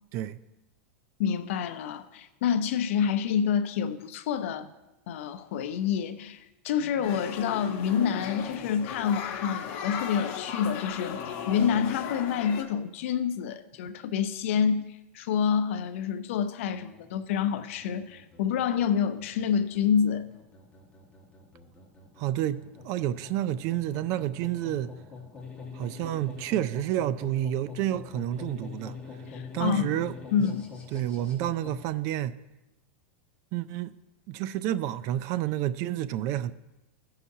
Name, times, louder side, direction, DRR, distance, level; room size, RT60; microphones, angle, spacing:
voice 1, 1.2-4.7 5.1-20.2 29.3-29.9 30.3-30.7, left 7 dB, 70° left, 0.6 m, -28 dB
sound 1, 7.0-12.6, left 7 dB, 55° left, 1.0 m, -36 dB
sound 2, 16.7-31.9, left 4 dB, 15° left, 1.6 m, -45 dB
voice 2, 22.2-24.9 25.7-29.0 29.5-30.1 30.9-32.4 33.5-33.9 34.3-36.5, right 12 dB, 45° right, 0.3 m, -29 dB
15.5 x 5.7 x 2.8 m
supercardioid pair, 135°, 7 cm